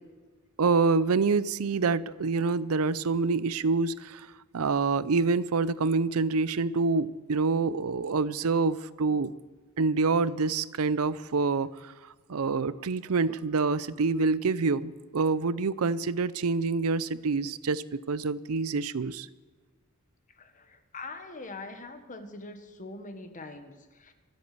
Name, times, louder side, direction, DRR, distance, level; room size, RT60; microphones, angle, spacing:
voice 1, 0.6-4.2 4.5-9.3 9.8-11.7 12.3-19.3, right 4 dB, 75° right, 17 dB, 0.6 m, -26 dB
voice 2, 20.4-24.1, left 3 dB, 35° left, 8 dB, 1.4 m, -43 dB
24.5 x 8.3 x 6.8 m, 1.4 s
head